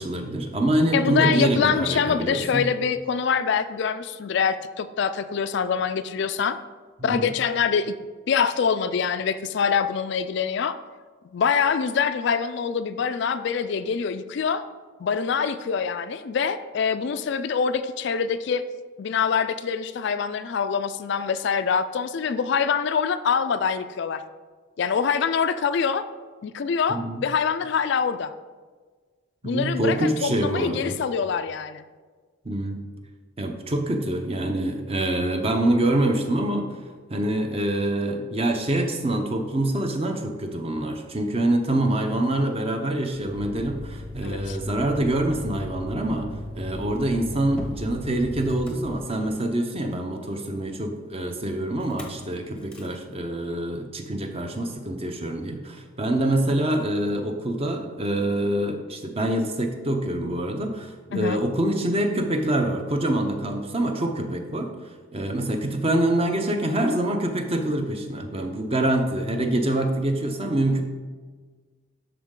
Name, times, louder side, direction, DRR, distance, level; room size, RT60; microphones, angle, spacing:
voice 1, 0.0-2.7 7.0-7.3 26.9-27.2 29.4-30.9 32.4-32.8 33.4-36.8 37.1-64.7 65.1-70.8, right 1 dB, 30° right, 4 dB, 0.7 m, -25 dB
voice 2, 0.9-6.6 7.0-7.9 8.3-10.8 11.3-14.6 15.0-18.6 19.0-24.2 24.8-26.0 26.4-28.3 29.4-31.8 44.2-44.6 61.1-61.4, left 6 dB, 55° left, 11 dB, 0.3 m, -25 dB
Motor vehicle (road), 43.1-49.5 51.8-52.2 52.6-52.9, left 1 dB, 5° left, 0.7 m, -37 dB
11.5 x 4.0 x 3.7 m, 1.4 s
head